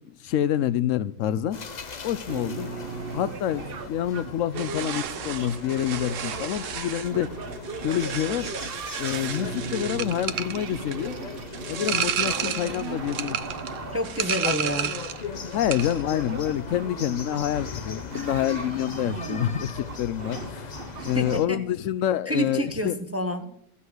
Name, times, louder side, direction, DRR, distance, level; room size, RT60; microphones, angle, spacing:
voice 1, 0.2-1.6 2.0-2.7 3.1-7.3 7.8-8.5 9.0-11.2 11.7-13.4 14.4-14.5 15.5-20.7 21.0-23.0, left 11 dB, 85° left, 1.0 m, -27 dB
sound 1, 1.5-21.4, left 5 dB, 40° left, 0.8 m, -39 dB
sound 2, 2.3-21.4, right 4 dB, 50° right, 1.1 m, -38 dB
sound 3, 4.5-15.3 15.5-16.0, right 9 dB, 80° right, 1.1 m, -32 dB
voice 2, 13.9-14.9 21.0-21.6 22.3-23.6, equal, 15° right, 0.8 m, -29 dB
14.5 x 5.6 x 7.9 m
omnidirectional pair, 1.3 m